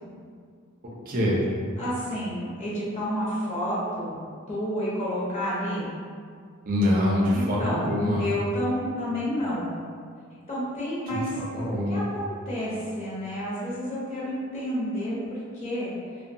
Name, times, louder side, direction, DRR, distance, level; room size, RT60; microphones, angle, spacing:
voice 1, 1.1-1.4 6.7-8.2 11.1-12.0, left 1 dB, 40° right, -4 dB, 0.5 m, -24 dB
voice 2, 1.8-4.2 4.5-5.9 7.3-7.8 8.2-9.7 10.5-15.9, equal, 35° left, -9 dB, 0.8 m, -30 dB
2.7 x 2.1 x 2.7 m, 2.1 s
head